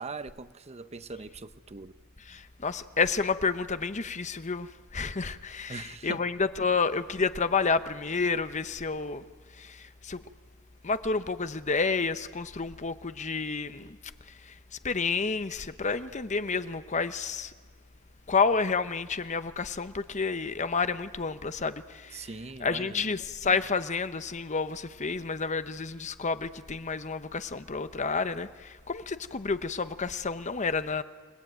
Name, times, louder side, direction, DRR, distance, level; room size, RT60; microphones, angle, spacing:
voice 1, 0.0-1.9 5.7-6.2 22.1-23.1, right 3 dB, 30° right, 0.7 m, -41 dB
voice 2, 2.3-9.3 9.6-10.2 10.8-14.0 14.4-14.6 14.8-17.5 18.3-22.3 22.6-31.0, left 4 dB, 35° left, 0.8 m, -30 dB
29.0 x 19.5 x 9.2 m
head